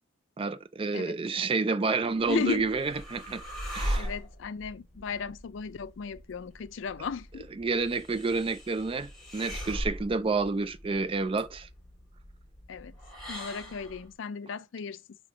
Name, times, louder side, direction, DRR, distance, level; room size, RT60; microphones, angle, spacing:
voice 1, 0.4-3.4 3.7-4.1 7.6-11.7, right 4 dB, 25° right, 0.3 m, -29 dB
sound 1, 2.1-14.1, equal, ahead, 2.3 m, -40 dB
voice 2, 2.3-2.7 4.0-7.5 12.7-12.9 13.3-15.0, left 5 dB, 70° left, 0.4 m, -35 dB
5.6 x 3.6 x 4.8 m
head